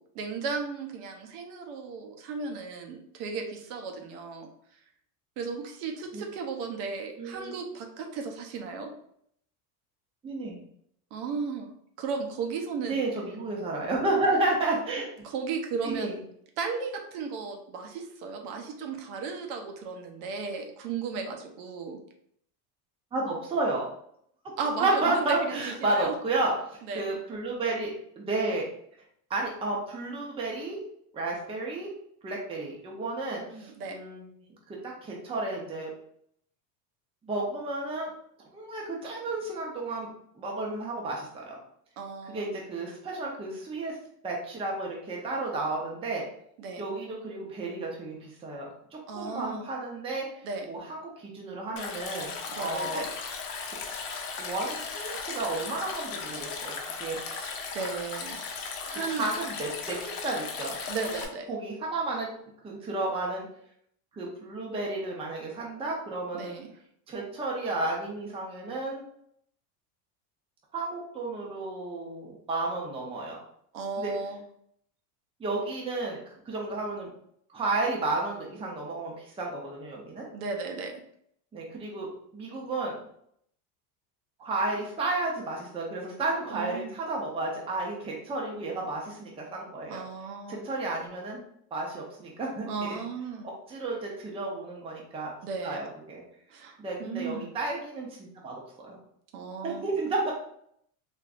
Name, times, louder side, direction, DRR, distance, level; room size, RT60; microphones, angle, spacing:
voice 1, 0.0-4.5 5.4-8.9 11.1-11.7 12.0-13.1 15.2-16.1 16.6-22.0 24.6-26.1 26.9-27.0 33.3-34.0 42.0-42.5 46.6-46.8 49.1-49.7 50.4-50.7 52.5-53.1 57.3-58.4 58.8-59.3 60.9-61.5 66.3-66.7 73.7-74.4 80.3-80.9 86.5-86.9 89.9-90.6 92.6-93.5 95.4-95.8 96.5-97.5 99.3-99.8, right 5 dB, 70° right, 4 dB, 0.8 m, -35 dB
voice 2, 7.2-7.6 10.2-10.6 12.9-15.1 15.8-16.2 23.1-23.9 24.8-28.7 29.3-30.8 31.1-31.9 32.2-34.3 34.7-35.9 37.2-38.1 38.5-40.1 40.4-41.6 42.3-44.0 44.2-46.2 46.8-48.7 49.1-53.0 54.4-56.7 57.0-57.2 59.2-60.8 61.5-62.3 62.6-63.5 64.1-66.6 67.1-69.0 70.7-73.4 74.0-74.1 75.4-77.1 77.5-80.2 81.5-82.9 84.4-90.0 90.5-91.4 91.7-93.0 93.7-95.3 95.6-96.2 96.8-99.0 99.6-100.3, right 2 dB, 10° right, -2 dB, 0.5 m, -32 dB
Stream, 51.8-61.3, left 5 dB, 75° left, 0.8 m, -37 dB
3.5 x 2.6 x 2.4 m, 0.69 s
supercardioid pair, 130°, 47 cm